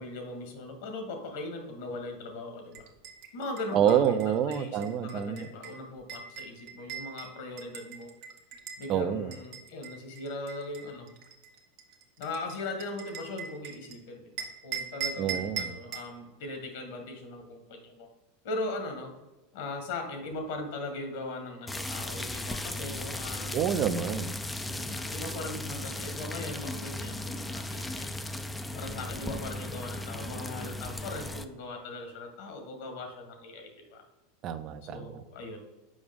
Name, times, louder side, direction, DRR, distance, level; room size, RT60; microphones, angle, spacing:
voice 1, 0.0-2.9 3.3-8.1 8.8-11.1 12.2-18.1 18.4-19.1 19.5-23.6 24.7-28.1 28.7-34.0 34.8-35.6, left 2 dB, 70° left, 5 dB, 1.4 m, -39 dB
sound 1, 2.7-8.9 9.3-14.0 14.4-16.1, right 7 dB, 60° right, 0.9 m, -40 dB
voice 2, 3.7-5.5 8.9-9.3 15.2-15.7 23.5-24.3 34.4-35.2, right 9 dB, 45° right, 11 dB, 0.5 m, -27 dB
sound 2, 21.7-31.4, left 1 dB, 10° left, 0.4 m, -36 dB
6.3 x 4.9 x 3.6 m, 1.0 s
hypercardioid pair, 100°, 0 cm